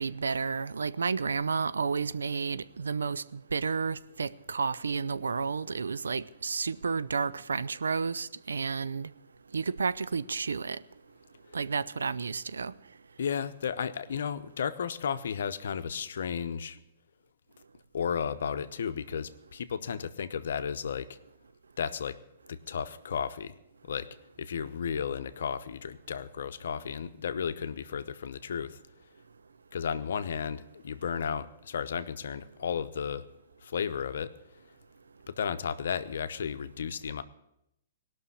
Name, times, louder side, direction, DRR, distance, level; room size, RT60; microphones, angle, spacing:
voice 1, 0.0-9.1 9.5-10.8 11.5-12.7, right 5 dB, 85° right, 0.5 m, -31 dB
voice 2, 13.2-16.8 17.9-21.2 21.8-22.2 22.5-23.6 23.8-24.1 24.4-28.8 29.7-33.3 33.6-34.3 35.3-37.2, left 7 dB, 70° left, 0.9 m, -33 dB
18.0 x 6.3 x 9.6 m
hypercardioid pair, 130°, 0 cm